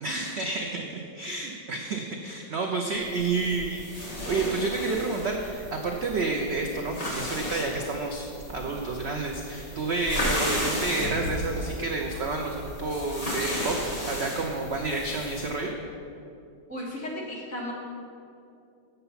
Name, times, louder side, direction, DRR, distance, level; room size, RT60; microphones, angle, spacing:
voice 1, 0.0-13.8 14.1-15.7, right 3 dB, 65° right, 2 dB, 0.6 m, -30 dB
sound 1, 3.0-15.6, equal, 25° left, 1.4 m, -34 dB
voice 2, 16.7-17.7, left 1 dB, 45° left, -4 dB, 1.8 m, -34 dB
8.0 x 6.9 x 5.6 m, 2.6 s
omnidirectional pair, 1.9 m